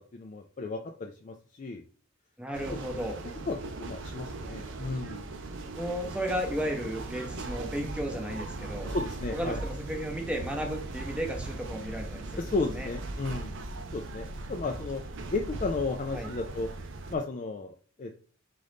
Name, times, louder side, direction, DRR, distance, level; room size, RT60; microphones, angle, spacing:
voice 1, 0.1-1.8 2.7-2.8 3.5-5.3 8.9-9.6 12.4-13.6 13.9-15.0 15.3-16.7 17.1-18.2, left 3 dB, 35° left, 3 dB, 0.3 m, -34 dB
voice 2, 2.4-3.2 5.7-8.9 9.3-12.5 12.7-12.9 16.1-16.3, equal, 5° right, 3 dB, 0.7 m, -34 dB
sound 1, 2.5-17.2, right 2 dB, 60° right, 0.5 m, -39 dB
3.8 x 3.8 x 3.4 m, 0.43 s
head